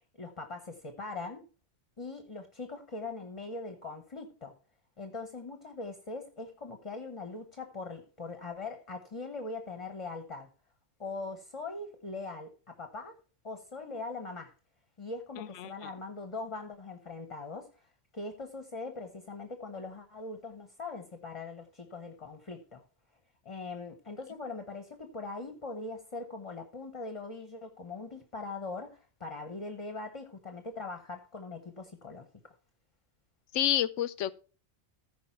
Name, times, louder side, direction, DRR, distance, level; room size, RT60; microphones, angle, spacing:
voice 1, 0.2-1.5 2.0-4.5 5.0-10.5 11.0-13.2 13.4-14.5 15.0-17.9 18.1-22.8 23.4-32.5, left 3 dB, 30° left, 0.9 m, -41 dB
voice 2, 15.4-15.9 33.5-34.3, left 12 dB, 80° left, 1.0 m, -30 dB
14.5 x 5.0 x 4.5 m
omnidirectional pair, 1.2 m